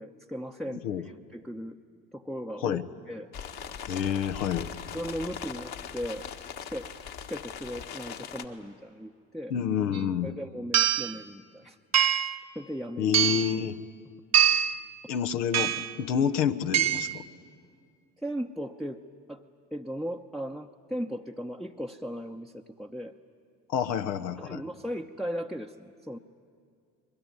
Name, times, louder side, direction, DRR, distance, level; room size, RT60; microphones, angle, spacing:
voice 1, 0.0-1.8 2.1-2.8 3.1-3.3 4.9-6.3 6.6-6.9 7.2-9.5 10.2-11.8 12.5-13.2 18.2-19.0 19.3-19.4 19.7-23.1 24.4-26.2, equal, ahead, 3 dB, 0.8 m, -37 dB
sound 1, 3.3-8.5, left 7 dB, 45° left, 1.8 m, -40 dB
voice 2, 3.9-4.7 9.5-10.3 13.0-13.8 15.1-17.2 23.7-24.6, left 8 dB, 75° left, 9 dB, 1.1 m, -28 dB
sound 2, 9.9-10.0 10.7-11.1 11.9-12.4 13.1-13.6 14.3-14.8 15.5-15.9 16.7-17.2, right 10 dB, 30° right, 0.9 m, -24 dB
23.5 x 22.0 x 9.6 m, 2.2 s
figure-of-eight pair, 55°, 49 cm